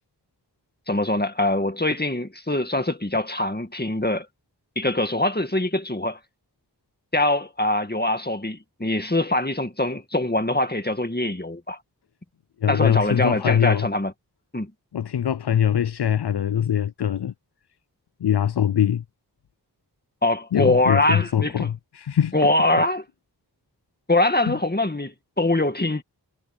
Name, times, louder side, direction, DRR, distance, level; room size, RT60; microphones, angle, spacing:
voice 1, 0.9-4.3 4.8-6.2 7.1-11.8 12.7-14.1 14.5-14.7 20.2-21.7 22.3-23.0 24.1-26.0, left 2 dB, 25° left, 2.1 m, -23 dB
voice 2, 12.6-13.9 14.9-17.3 18.2-19.0 20.5-22.3 24.5-24.6, left 9 dB, 75° left, 0.5 m, -22 dB
wide cardioid pair, 40°, 40 cm